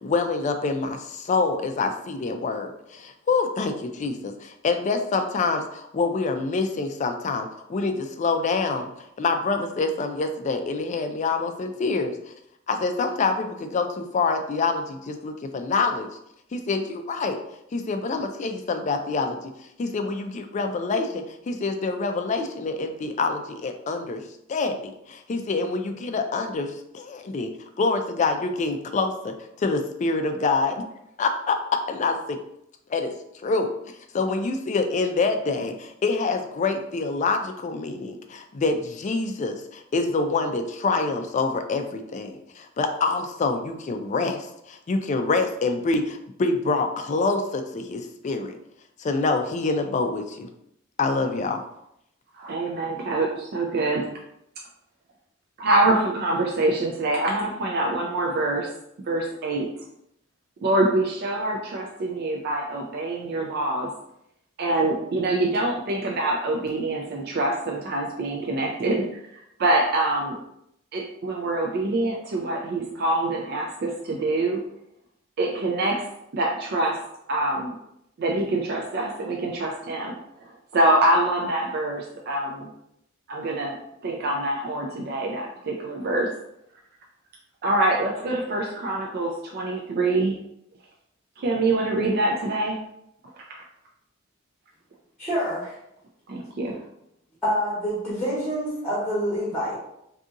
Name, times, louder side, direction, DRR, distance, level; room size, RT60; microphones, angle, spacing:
voice 1, 0.0-8.9 9.2-12.2 12.7-16.1 16.5-17.4 17.7-19.4 19.8-24.2 24.5-27.5 27.8-30.8 31.2-31.6 31.9-32.4 32.9-33.1 33.4-33.7 34.1-48.6 49.0-50.5 51.0-51.6, left 3 dB, 35° left, 6 dB, 0.3 m, -26 dB
voice 2, 52.3-54.1 55.6-58.7 59.1-59.7 60.6-63.9 64.6-69.0 69.6-70.4 70.9-74.6 75.4-77.0 77.3-77.8 78.2-80.2 80.7-82.7 83.3-83.8 84.0-86.3 87.6-90.4 91.4-92.8 93.3-93.4 96.3-96.8, right 2 dB, 50° right, 0 dB, 0.4 m, -25 dB
voice 3, 95.2-95.8 97.4-99.8, equal, 5° left, -8 dB, 1.0 m, -27 dB
2.7 x 2.5 x 3.6 m, 0.79 s
head